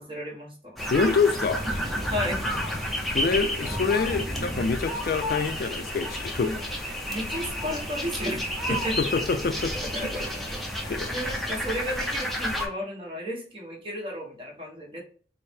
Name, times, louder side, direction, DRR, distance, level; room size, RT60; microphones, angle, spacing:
voice 1, 0.0-0.8 2.1-2.4 6.4-6.6 7.1-9.1 9.7-15.0, equal, 30° right, 1.1 m, -33 dB
sound 1, 0.8-12.7, equal, ahead, 0.5 m, -31 dB
voice 2, 0.9-1.7 3.1-6.5 8.7-9.7 10.9-11.1, left 4 dB, 55° left, 0.3 m, -26 dB
4.3 x 2.0 x 3.4 m
head